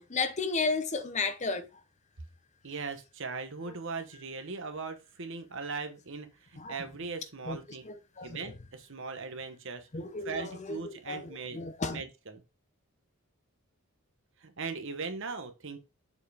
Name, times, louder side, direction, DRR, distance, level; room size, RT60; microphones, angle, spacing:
voice 1, 0.0-1.7 3.7-3.8 6.6-6.8 7.5-7.6 7.8-8.4 9.9-12.0, left 4 dB, 30° left, 0.7 m, -33 dB
voice 2, 2.6-7.8 8.2-9.9 10.2-11.6 11.9-12.4 14.4-15.8, right 4 dB, 60° right, 1.1 m, -39 dB
7.0 x 4.6 x 3.4 m
head